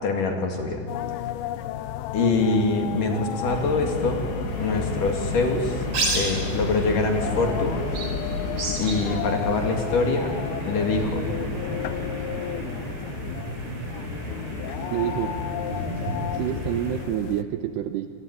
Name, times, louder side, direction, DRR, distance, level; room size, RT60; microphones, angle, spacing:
voice 1, 0.0-0.8 2.1-4.2 4.6-5.8 6.1-7.8 8.8-10.3 10.6-11.3, left 3 dB, 50° left, 3 dB, 3.5 m, -24 dB
sound 1, 0.9-17.4, left 12 dB, 90° left, 2.2 m, -34 dB
sound 2, 3.5-9.2, left 3 dB, 65° left, 4.6 m, -32 dB
sound 3, 4.5-17.0, right 1 dB, 60° right, 7.8 m, -32 dB
voice 2, 14.9-15.4 16.3-18.1, right 12 dB, 75° right, 9 dB, 2.6 m, -28 dB
28.5 x 21.0 x 9.8 m, 2.3 s
omnidirectional pair, 5.5 m